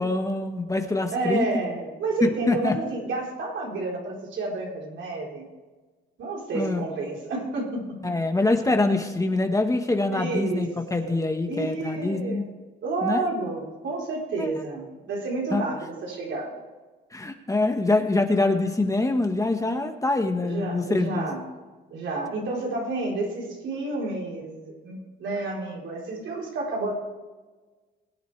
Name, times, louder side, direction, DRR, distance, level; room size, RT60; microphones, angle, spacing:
voice 1, 0.0-1.5 2.2-2.7 6.5-6.8 8.0-12.4 13.0-13.3 14.4-14.5 15.5-15.6 17.1-21.3, left 2 dB, 15° left, 5 dB, 1.4 m, -24 dB
voice 2, 1.1-5.4 6.2-8.0 10.1-10.7 11.0-11.2 11.5-12.5 12.8-16.6 20.4-21.5 21.9-26.9, right 2 dB, 70° right, -2 dB, 4.1 m, -30 dB
22.0 x 9.2 x 3.4 m, 1.3 s
cardioid pair, 90°, 20 cm